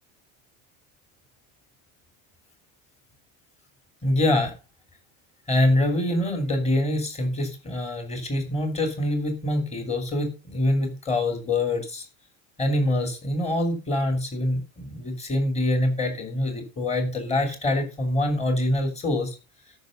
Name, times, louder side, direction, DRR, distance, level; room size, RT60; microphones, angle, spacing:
voice 1, 4.0-4.5 5.5-12.1 12.6-19.4, left 1 dB, 15° left, 5 dB, 2.9 m, -25 dB
13.5 x 6.1 x 5.2 m, 0.30 s
cardioid pair, 160°, 42 cm